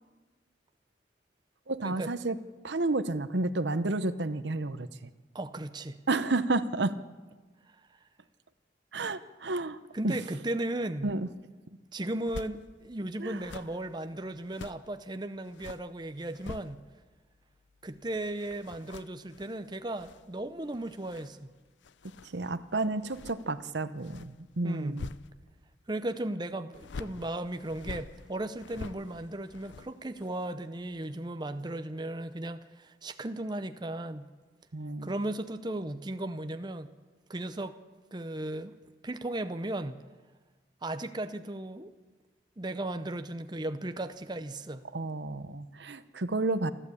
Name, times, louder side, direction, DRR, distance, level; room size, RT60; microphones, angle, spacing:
voice 1, 1.7-2.4 2.6-5.1 6.1-7.0 8.9-9.8 10.0-10.2 11.0-11.3 13.2-13.4 22.3-25.1 34.7-35.1 44.9-46.7, right 2 dB, 70° right, 13 dB, 0.9 m, -31 dB
voice 2, 5.3-6.0 7.7-7.9 9.9-11.1 11.9-16.8 17.8-21.5 24.6-25.0 25.9-34.2 35.0-36.9 37.3-37.8 38.1-38.7 39.0-40.0 40.8-41.9 42.6-44.8, right 1 dB, 25° right, 9 dB, 0.7 m, -36 dB
sound 1, 12.1-12.6 13.3-14.9 15.4-17.1 17.4-25.8 26.7-30.6 30.9-31.0, left 4 dB, 75° left, 0.6 m, -47 dB
28.0 x 12.5 x 8.4 m, 1.3 s
head